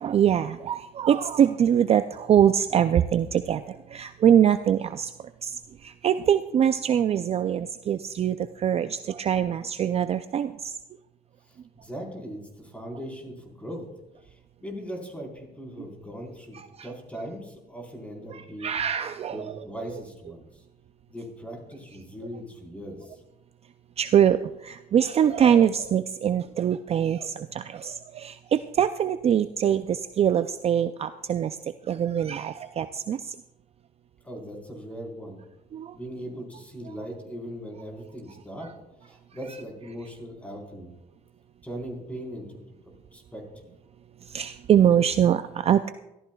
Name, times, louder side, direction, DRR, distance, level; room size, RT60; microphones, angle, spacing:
voice 1, 0.0-5.1 5.4-5.6 5.8-10.8 16.5-16.7 18.3-19.4 24.0-31.6 31.9-33.3 35.7-36.0 44.3-45.9, right 9 dB, 35° right, 11 dB, 0.4 m, -23 dB
voice 2, 11.4-13.8 14.2-16.6 16.8-18.8 19.3-20.6 21.1-23.2 34.2-35.4 35.9-38.7 39.0-40.9 41.6-42.6 42.8-43.6, equal, 10° left, 0 dB, 4.2 m, -39 dB
24.0 x 14.0 x 2.3 m, 0.98 s
cardioid pair, 110°, 17 cm